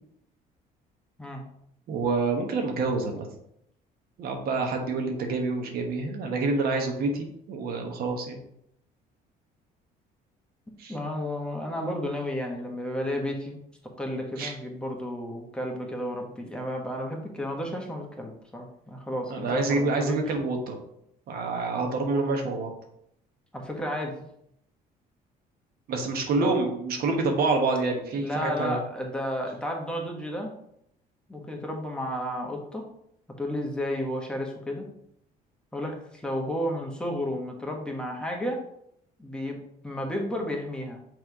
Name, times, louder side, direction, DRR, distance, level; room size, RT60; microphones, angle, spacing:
voice 1, 1.9-3.3 4.2-8.4 10.8-10.9 14.4-14.5 19.3-20.8 21.3-22.7 25.9-28.8, right 3 dB, 65° right, 3 dB, 1.3 m, -27 dB
voice 2, 10.9-13.6 14.0-20.2 23.5-24.3 26.4-26.7 28.2-30.5 31.3-32.9 33.4-34.9 35.7-38.6 39.2-39.6 39.8-41.0, equal, 5° left, 0 dB, 1.3 m, -32 dB
6.4 x 3.5 x 4.8 m, 0.73 s
cardioid pair, 110°, 17 cm